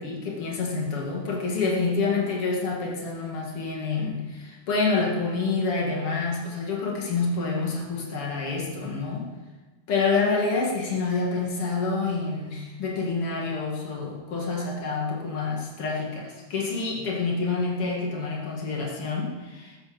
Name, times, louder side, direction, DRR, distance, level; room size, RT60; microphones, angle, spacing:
voice 1, 0.0-9.3 9.9-19.8, left 4 dB, 45° left, -1 dB, 1.9 m, -27 dB
14.0 x 14.0 x 5.2 m, 1.2 s
omnidirectional pair, 5.9 m